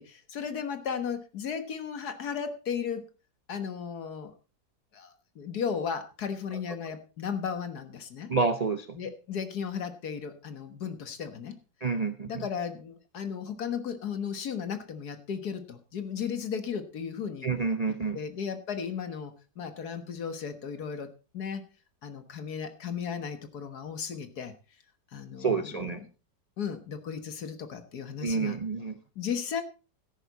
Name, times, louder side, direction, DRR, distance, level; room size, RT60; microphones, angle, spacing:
voice 1, 0.0-3.0 3.5-4.3 4.9-8.3 8.9-11.6 12.3-17.5 18.1-21.1 21.3-21.6 22.0-24.5 25.1-26.0 26.6-28.6 29.2-29.6, left 7 dB, 65° left, 9 dB, 1.8 m, -35 dB
voice 2, 8.3-9.0 11.8-12.5 17.4-18.2 25.4-26.0 28.2-29.0, right 4 dB, 45° right, 9 dB, 0.5 m, -29 dB
13.0 x 11.0 x 4.1 m, 0.33 s
omnidirectional pair, 1.9 m